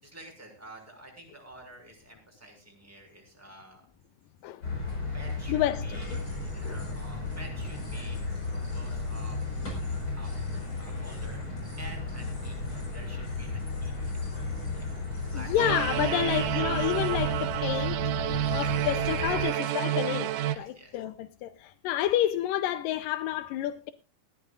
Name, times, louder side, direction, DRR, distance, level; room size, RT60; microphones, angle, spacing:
voice 1, 0.0-3.8 5.1-6.1 6.4-8.2 8.5-9.4 10.2-10.3 10.8-11.4 11.8-12.6 12.9-14.9 15.1-15.5 20.4-21.0, right 1 dB, 5° right, 5.8 m, -49 dB
sound 1, 4.6-19.4, left 3 dB, 35° left, 6.0 m, -34 dB
voice 2, 5.5-5.9 6.6-6.8 15.3-18.0 18.5-23.9, left 12 dB, 85° left, 2.5 m, -29 dB
sound 2, 6.0-20.0, left 1 dB, 20° left, 6.1 m, -57 dB
sound 3, 15.6-20.6, right 12 dB, 80° right, 2.4 m, -29 dB
19.0 x 15.0 x 2.5 m
omnidirectional pair, 3.8 m